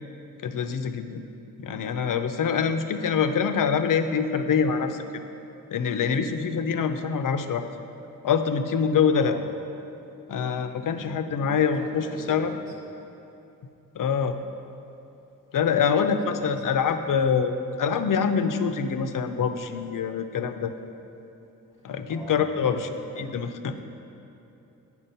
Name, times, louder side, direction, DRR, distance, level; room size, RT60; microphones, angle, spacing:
voice 1, 0.4-1.2 1.6-5.2 5.7-7.7 8.2-9.4 10.3-12.5 13.9-14.4 15.5-20.7 21.8-22.9 23.2-23.8, left 6 dB, 65° left, 9 dB, 0.6 m, -25 dB
voice 2, 11.4-12.7 15.8-16.9 22.1-23.3 23.7-23.8, right 1 dB, 10° right, -5 dB, 0.9 m, -43 dB
9.0 x 6.0 x 5.5 m, 2.9 s
wide cardioid pair, 105°, 35 cm